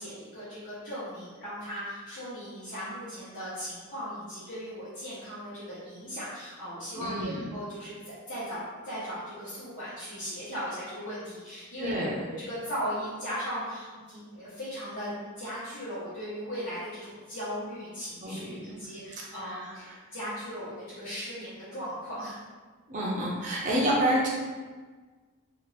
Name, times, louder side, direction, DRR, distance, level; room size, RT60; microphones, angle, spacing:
voice 1, 0.0-11.9 12.3-22.4, equal, 60° left, -14 dB, 1.2 m, -38 dB
voice 2, 7.0-7.4 11.8-12.2 18.2-18.8 19.4-19.6 22.9-24.3, equal, 40° right, -4 dB, 0.6 m, -28 dB
2.7 x 2.5 x 3.2 m, 1.4 s
head